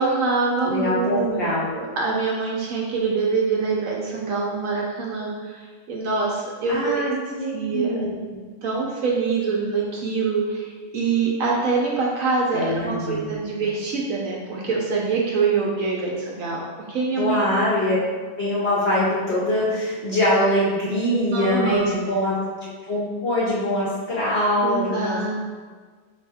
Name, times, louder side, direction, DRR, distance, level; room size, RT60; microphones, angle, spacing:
voice 1, 0.0-7.1 7.5-8.1 8.6-16.6 16.9-17.4 21.3-22.2 24.6-25.3, right 4 dB, 65° right, -2 dB, 0.9 m, -25 dB
voice 2, 0.6-1.7 6.7-8.2 12.5-13.4 17.2-18.0 18.4-25.3, left 1 dB, 55° left, -7 dB, 0.7 m, -23 dB
4.2 x 2.8 x 3.4 m, 1.5 s
omnidirectional pair, 1.7 m